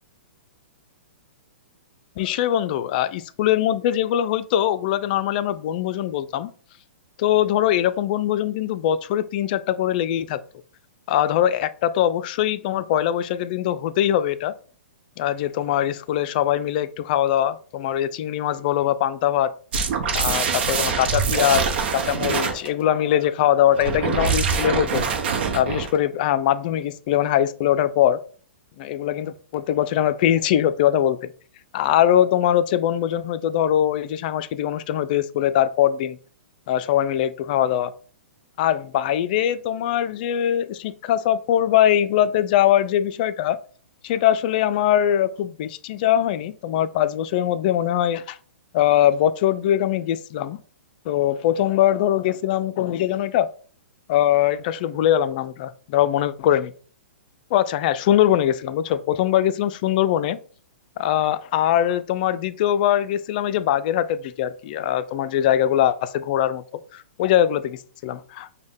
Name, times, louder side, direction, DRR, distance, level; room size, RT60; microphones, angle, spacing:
voice 1, 2.2-6.5 7.2-10.4 11.1-14.5 15.2-19.5 20.1-25.1 25.5-28.2 28.8-31.3 31.7-36.2 36.7-37.9 38.6-43.6 44.0-48.4 48.7-50.6 51.1-53.5 54.1-56.7 57.5-60.4 61.0-66.6 66.9-68.6, left 11 dB, 45° left, 0.4 m, -22 dB
sound 1, 19.7-22.7 23.7-26.0, right 5 dB, 60° right, 0.8 m, -24 dB
5.2 x 2.2 x 3.5 m
hypercardioid pair, 125°, 6 cm